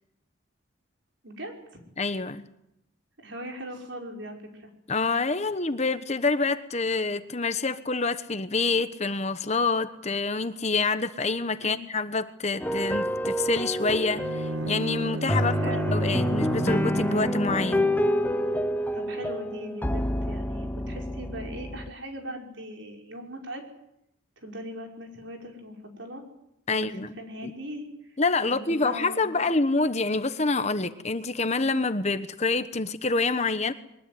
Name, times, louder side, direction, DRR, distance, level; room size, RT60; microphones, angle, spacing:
voice 1, 1.2-1.6 3.2-4.7 11.6-11.8 15.6-16.0 18.9-23.6 24.4-26.2 26.7-28.2 28.5-29.4, equal, 70° right, 5.6 m, -39 dB
voice 2, 2.0-2.4 4.9-17.9 26.7-27.1 27.4-27.5 28.2-33.7, left 3 dB, 35° left, 1.2 m, -27 dB
sound 1, 12.6-21.9, equal, 10° left, 0.9 m, -28 dB
Bowed string instrument, 14.1-18.2, right 1 dB, 85° right, 1.2 m, -33 dB
23.0 x 20.5 x 9.6 m
head